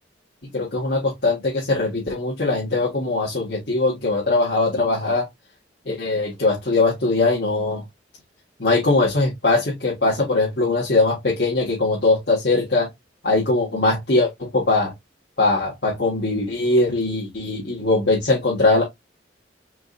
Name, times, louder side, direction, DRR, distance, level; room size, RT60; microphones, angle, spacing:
voice 1, 0.5-5.3 5.8-7.8 8.6-12.9 13.2-14.9 15.4-18.8, left 2 dB, 60° left, 1.7 m, -21 dB
5.0 x 4.0 x 2.4 m
head